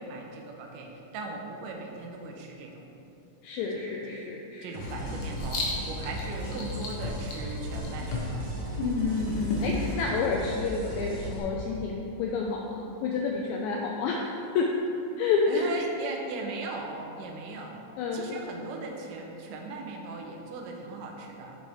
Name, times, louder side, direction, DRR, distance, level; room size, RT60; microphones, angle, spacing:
voice 1, 0.0-2.9 3.7-4.2 4.6-8.5 15.5-17.8 18.1-21.6, right 3 dB, 80° right, 1 dB, 2.3 m, -38 dB
voice 2, 3.4-4.8 8.9-14.7 15.2-15.7 18.0-18.4, left 4 dB, 80° left, 0 dB, 1.7 m, -29 dB
sound 1, 4.7-11.4, equal, 55° right, 1.9 m, -37 dB
Writing, 4.8-10.0, left 3 dB, 65° left, 2.0 m, -34 dB
8.2 x 6.3 x 3.5 m, 2.8 s
omnidirectional pair, 3.7 m